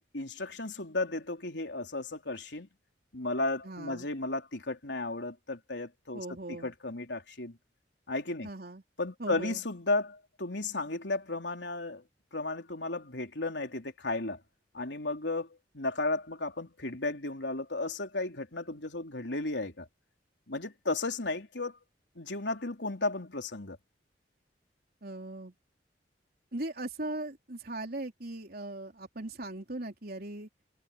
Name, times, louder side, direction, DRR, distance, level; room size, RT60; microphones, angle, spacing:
voice 1, 0.1-2.7 3.1-7.6 8.1-8.5 9.0-12.0 12.3-14.4 14.7-19.9 20.5-21.8 22.2-23.8, left 2 dB, 80° left, 3.7 m, -34 dB
voice 2, 3.6-4.1 6.1-6.7 8.4-8.8 9.2-9.6 25.0-25.5 26.5-30.5, right 2 dB, 60° right, 3.7 m, -39 dB
head